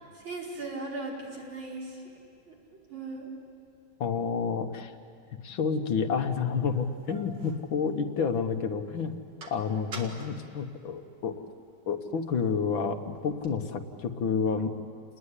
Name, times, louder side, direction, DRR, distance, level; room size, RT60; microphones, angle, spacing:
voice 1, 0.1-2.0 2.5-3.3, right 2 dB, 85° right, -4 dB, 5.9 m, -38 dB
voice 2, 4.0-4.9 5.4-9.1 9.5-11.3 11.9-14.8, left 5 dB, 80° left, 6 dB, 2.2 m, -29 dB
sound 1, 5.9-6.0 6.6-8.5 8.9-11.5 11.9-13.7, right 3 dB, 65° right, 2.8 m, -47 dB
29.5 x 20.0 x 9.9 m, 2.3 s
omnidirectional pair, 2.1 m